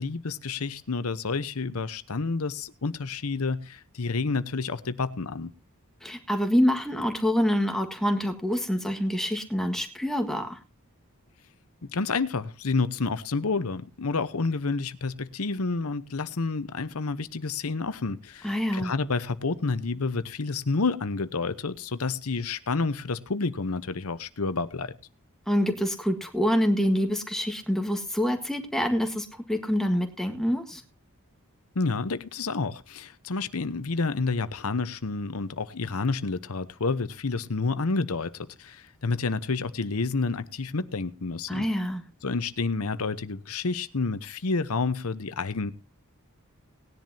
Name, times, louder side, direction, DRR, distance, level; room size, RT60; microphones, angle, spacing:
voice 1, 0.0-5.5 11.9-24.9 31.7-41.7 42.2-45.7, left 4 dB, 80° left, 0.9 m, -29 dB
voice 2, 6.0-10.6 18.4-18.9 25.5-30.8 41.5-42.0, equal, ahead, 1.7 m, -26 dB
19.0 x 10.5 x 2.8 m
head